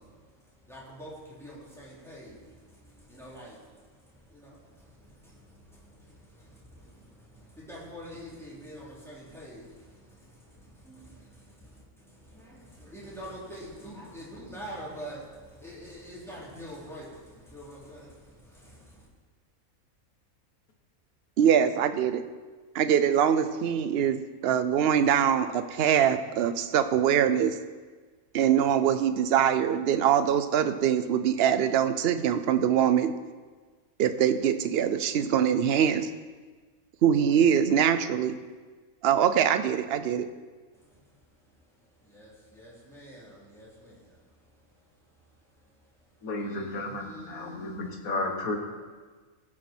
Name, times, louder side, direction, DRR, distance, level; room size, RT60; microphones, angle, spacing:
voice 1, 0.0-19.1 40.7-48.1, equal, ahead, -8 dB, 3.3 m, -47 dB
voice 2, 21.4-22.2 22.7-27.6 28.3-33.1 34.0-36.1 37.0-38.3 39.0-40.3, right 9 dB, 60° right, 10 dB, 0.7 m, -23 dB
voice 3, 46.2-48.6, left 2 dB, 75° left, 3 dB, 1.8 m, -33 dB
17.0 x 6.3 x 4.4 m, 1.4 s
omnidirectional pair, 1.5 m